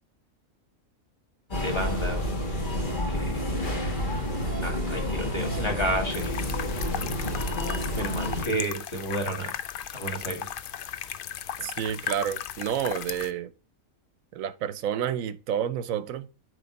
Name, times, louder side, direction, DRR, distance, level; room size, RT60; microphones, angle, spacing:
sound 1, 1.5-8.4, left 1 dB, 35° left, 1.5 m, -29 dB
voice 1, 1.6-2.2 3.1-3.4 4.6-6.5 7.9-9.6 9.9-10.5 11.6-11.7, right 1 dB, 20° left, 1.8 m, -31 dB
sound 2, 6.1-13.3, left 9 dB, 85° left, 0.4 m, -36 dB
voice 2, 11.6-13.5 14.3-16.3, right 9 dB, 75° right, 1.1 m, -29 dB
8.6 x 3.5 x 4.0 m
omnidirectional pair, 1.5 m